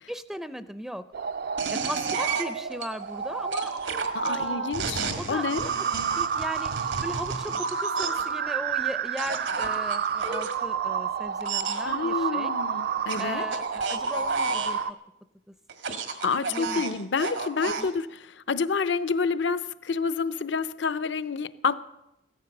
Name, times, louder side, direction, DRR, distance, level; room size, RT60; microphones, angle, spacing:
voice 1, 0.1-1.0 1.7-3.7 4.2-4.7 5.2-5.9 6.2-6.7 7.0-12.5 13.2-15.0 16.5-16.8 17.8-17.9, equal, 5° right, 0.5 m, -37 dB
sound 1, 1.1-14.9, right 6 dB, 55° right, 0.5 m, -30 dB
sound 2, 1.6-2.9 3.5-8.3 9.2-10.5 11.4-11.8 13.1-14.8 15.7-17.9, right 5 dB, 80° right, 1.9 m, -32 dB
voice 2, 4.1-5.7 11.9-13.4 16.2-21.7, left 5 dB, 70° left, 0.7 m, -28 dB
16.5 x 13.5 x 6.6 m
head